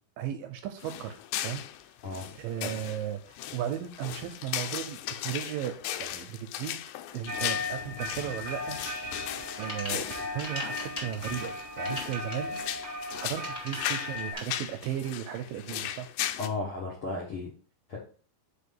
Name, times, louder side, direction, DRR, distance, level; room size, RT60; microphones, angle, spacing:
voice 1, 0.2-1.2 1.4-1.6 2.3-6.8 7.1-8.8 9.6-12.6 13.2-16.1, right 10 dB, 80° right, 7 dB, 2.1 m, -35 dB
sound 1, 0.8-16.5, left 12 dB, 80° left, 2.3 m, -37 dB
sound 2, 7.3-14.3, left 2 dB, 40° right, 1.3 m, -37 dB
sound 3, 9.4-14.4, left 1 dB, 35° left, 0.9 m, -41 dB
voice 2, 16.4-17.5 17.9-18.0, left 3 dB, 60° left, -4 dB, 1.4 m, -34 dB
5.0 x 4.6 x 5.4 m, 0.41 s
omnidirectional pair, 4.4 m